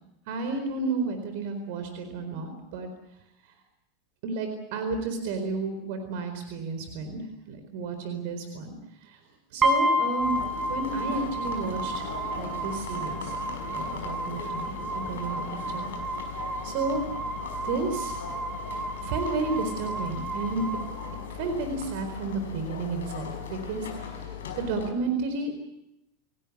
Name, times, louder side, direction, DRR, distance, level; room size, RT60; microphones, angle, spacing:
voice 1, 0.3-2.9 4.2-8.7 9.0-9.2 9.5-10.4 10.7-12.1 12.4-13.3 13.7-15.9 16.6-17.0 17.6-18.2 19.0-20.6 21.3-25.5, right 3 dB, 60° right, 7 dB, 4.3 m, -32 dB
sound 1, 9.6-21.6, right 1 dB, 30° right, 7.3 m, -31 dB
sound 2, 10.2-24.9, left 7 dB, 75° left, 5.0 m, -39 dB
28.5 x 17.5 x 8.5 m, 0.88 s
hypercardioid pair, 90°, 0 cm